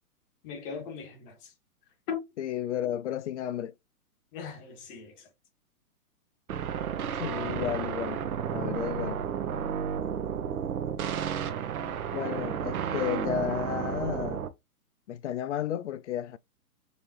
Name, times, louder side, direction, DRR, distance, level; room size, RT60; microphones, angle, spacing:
voice 1, 0.4-1.3 2.1-2.2 4.3-5.1 10.3-10.6, left 6 dB, 35° left, 1.9 m, -38 dB
voice 2, 2.4-3.7 7.2-8.2 8.5-9.2 12.1-14.4 15.1-16.4, left 10 dB, 50° left, 0.4 m, -32 dB
sound 1, 6.5-14.5, right 8 dB, 65° right, 0.9 m, -32 dB
5.4 x 3.0 x 3.1 m
hypercardioid pair, 130°, 46 cm